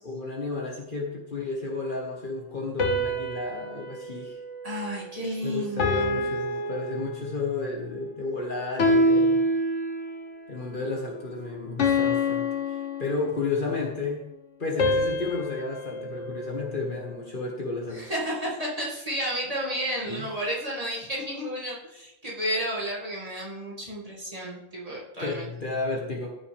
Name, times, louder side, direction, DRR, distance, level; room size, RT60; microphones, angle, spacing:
voice 1, 0.0-4.4 5.4-9.5 10.5-14.3 14.6-18.0 20.0-20.3 25.2-26.3, left 3 dB, 40° left, -1 dB, 1.5 m, -32 dB
sound 1, 2.8-5.3 5.8-7.5 8.8-10.3 11.8-13.7 14.8-17.2, left 1 dB, 65° left, 1.4 m, -27 dB
voice 2, 4.6-6.3 17.9-25.5, equal, 30° right, -5 dB, 2.4 m, -32 dB
14.0 x 6.2 x 3.5 m, 0.88 s
omnidirectional pair, 1.3 m